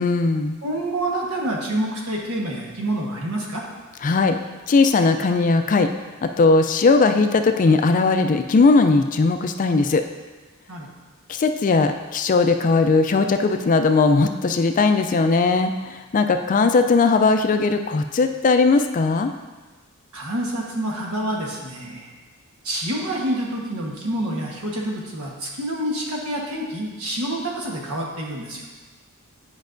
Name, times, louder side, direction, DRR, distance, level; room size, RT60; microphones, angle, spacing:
voice 1, 0.0-0.6 4.0-4.4 4.7-5.9 6.2-10.0 11.3-19.3, left 3 dB, 35° left, 7 dB, 0.4 m, -18 dB
voice 2, 0.6-3.6 10.7-10.9 20.1-22.1 22.6-28.6, right 1 dB, 80° right, -2 dB, 1.3 m, -27 dB
9.3 x 5.3 x 2.6 m, 1.3 s
head